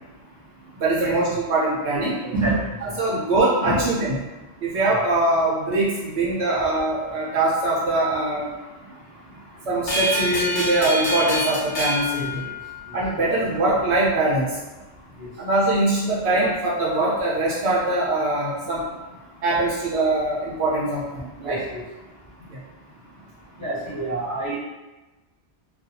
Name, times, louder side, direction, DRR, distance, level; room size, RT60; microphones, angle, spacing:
voice 1, 0.8-2.2 2.8-4.1 4.6-8.5 9.7-12.4 12.9-14.6 15.4-18.8 19.4-21.6 22.5-22.6, right 2 dB, 70° right, -6 dB, 0.8 m, -22 dB
voice 2, 1.9-2.6 2.9-3.0 3.6-3.8 12.1-12.3 13.1-13.2 21.4-21.8 23.6-24.6, right 2 dB, 15° right, -10 dB, 1.0 m, -28 dB
sound 1, 9.9-13.1, equal, 75° left, 1.0 m, -26 dB
2.4 x 2.2 x 2.7 m, 1.1 s
omnidirectional pair, 1.2 m